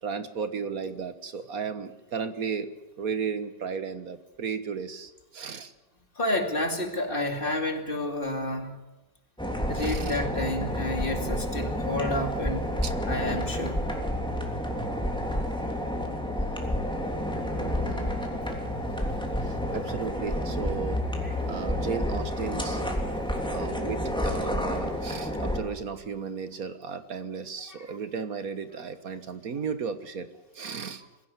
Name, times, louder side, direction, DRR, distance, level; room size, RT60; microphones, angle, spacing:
voice 1, 0.0-2.7 3.0-5.7 9.7-10.2 12.8-12.9 16.4-16.5 17.3-18.2 19.4-21.1 21.4-22.8 23.5-30.3 30.5-31.0, right 6 dB, 55° right, 11 dB, 1.7 m, -35 dB
voice 2, 6.1-8.8 9.7-12.7 13.1-13.8 19.4-19.6 20.6-20.7 21.2-21.7 22.4-22.7 24.9-25.1 27.7-27.8, left 1 dB, 30° left, 4 dB, 2.8 m, -31 dB
sound 1, 9.4-25.6, equal, 5° left, 3.0 m, -30 dB
22.0 x 16.0 x 9.5 m, 1.0 s
omnidirectional pair, 1.9 m